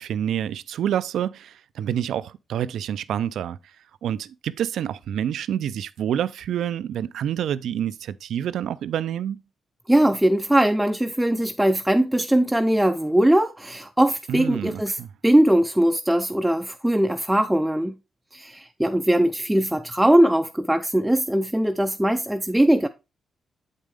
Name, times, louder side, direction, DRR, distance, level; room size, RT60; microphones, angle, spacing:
voice 1, 0.0-3.6 4.0-9.4 14.3-15.1, right 10 dB, 80° right, 0.3 m, -28 dB
voice 2, 9.9-15.0 15.2-17.9 18.3-22.9, right 1 dB, 5° right, 0.4 m, -20 dB
7.3 x 5.3 x 3.3 m
cardioid pair, 65°, 0 cm